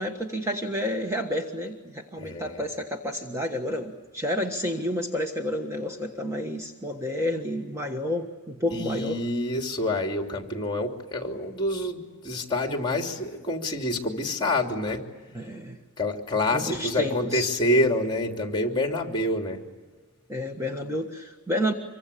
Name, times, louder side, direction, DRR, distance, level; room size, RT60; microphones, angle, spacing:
voice 1, 0.0-9.2 15.3-15.8 16.5-17.5 20.3-21.7, left 1 dB, 15° right, 3 dB, 1.5 m, -30 dB
voice 2, 2.2-2.6 8.7-15.0 16.0-19.6, left 1 dB, 20° left, 3 dB, 3.1 m, -27 dB
26.5 x 24.0 x 8.5 m, 1.3 s
head